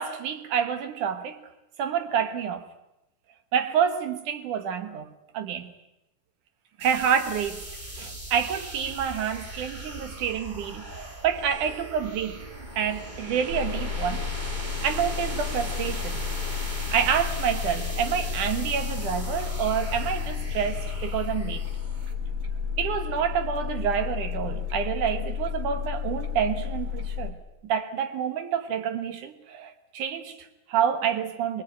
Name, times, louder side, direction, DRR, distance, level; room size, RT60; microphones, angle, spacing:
voice 1, 0.0-1.4 1.8-2.7 3.5-5.7 6.8-7.7 8.0-12.5 12.8-14.3 14.8-16.2 16.8-21.7 22.8-27.4 27.6-31.6, right 8 dB, 65° right, 2.6 m, -28 dB
sound 1, 6.8-22.1, right 1 dB, 15° right, 1.6 m, -38 dB
sound 2, 13.5-27.3, left 8 dB, 45° right, 2.5 m, -32 dB
22.5 x 22.0 x 9.2 m
omnidirectional pair, 4.2 m